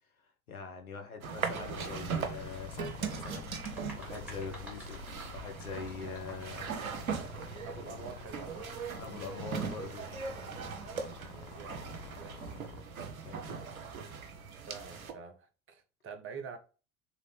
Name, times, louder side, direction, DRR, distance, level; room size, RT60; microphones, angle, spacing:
voice 1, 0.5-3.5 4.0-7.0 7.7-8.1 9.0-10.2 13.2-13.7, left 5 dB, 80° left, 1.0 m, -44 dB
sound 1, 1.2-15.1, right 6 dB, 75° right, 0.7 m, -40 dB
sound 2, 1.6-12.8, left 10 dB, 25° left, 0.3 m, -49 dB
sound 3, 3.0-6.6, right 1 dB, 5° right, 1.9 m, -51 dB
voice 2, 7.6-9.0 11.3-12.8 14.6-16.6, right 5 dB, 30° right, 0.9 m, -47 dB
3.8 x 3.3 x 3.2 m
figure-of-eight pair, 70°, 42 cm